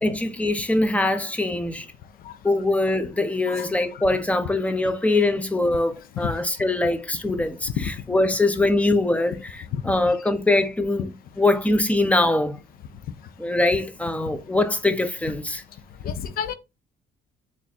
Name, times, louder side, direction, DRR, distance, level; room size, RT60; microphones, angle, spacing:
voice 1, 0.0-1.9 2.4-12.6 13.4-15.6, left 2 dB, 10° left, 0.6 m, -23 dB
voice 2, 7.8-8.2 9.7-9.8 16.0-16.5, left 8 dB, 60° left, 0.5 m, -30 dB
3.5 x 2.5 x 4.1 m
cardioid pair, 110°, 17 cm